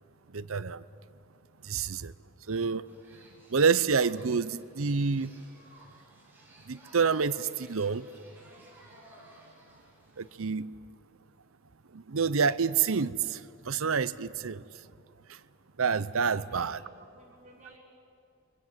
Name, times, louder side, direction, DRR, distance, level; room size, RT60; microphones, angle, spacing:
voice 1, 0.3-0.8 1.6-2.1 2.5-2.8 3.5-5.3 6.7-8.1 10.2-10.7 11.9-14.6 15.8-16.8, right 5 dB, 70° right, 16 dB, 0.7 m, -28 dB
sound 1, 2.9-10.4, right 1 dB, 10° right, 5.8 m, -56 dB
voice 2, 16.3-17.8, right 2 dB, 35° right, -4 dB, 5.9 m, -54 dB
28.5 x 24.5 x 7.5 m, 2.5 s
head